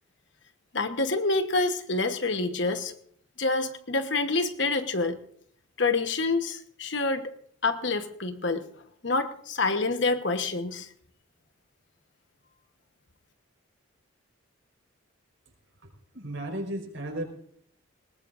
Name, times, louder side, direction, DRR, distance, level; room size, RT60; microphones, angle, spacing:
voice 1, 0.7-2.9 3.4-5.2 5.8-7.3 7.6-8.6 9.0-10.9, left 3 dB, 55° left, 8 dB, 1.2 m, -27 dB
voice 2, 16.1-17.3, right 1 dB, 65° right, 3 dB, 4.7 m, -34 dB
21.0 x 19.5 x 2.6 m, 0.62 s
head